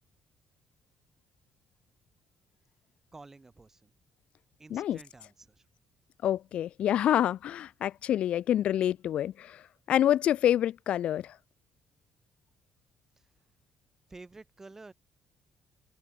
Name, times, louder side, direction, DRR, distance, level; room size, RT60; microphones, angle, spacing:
voice 1, 3.1-3.9 4.6-5.7 13.2-13.3 14.1-14.9, right 3 dB, 20° right, 4.9 m, -50 dB
voice 2, 6.2-9.6 9.9-11.3, left 11 dB, 65° left, 0.4 m, -27 dB
cardioid pair, 110°, 2 cm